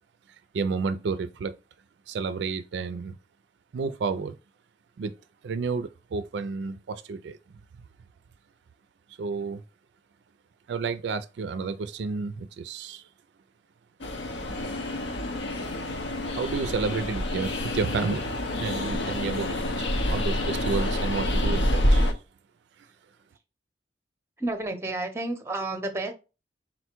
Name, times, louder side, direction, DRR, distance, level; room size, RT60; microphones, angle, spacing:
voice 1, 0.5-1.6 2.1-3.1 3.7-4.3 5.0-5.1 5.4-7.4 9.2-9.6 10.7-13.1 16.4-18.2 18.6-22.1, right 4 dB, 70° right, 0.3 m, -31 dB
Train, 14.0-22.1, left 1 dB, 75° left, 0.7 m, -27 dB
voice 2, 24.4-26.1, right 2 dB, 15° right, 0.6 m, -31 dB
4.0 x 2.1 x 4.4 m
head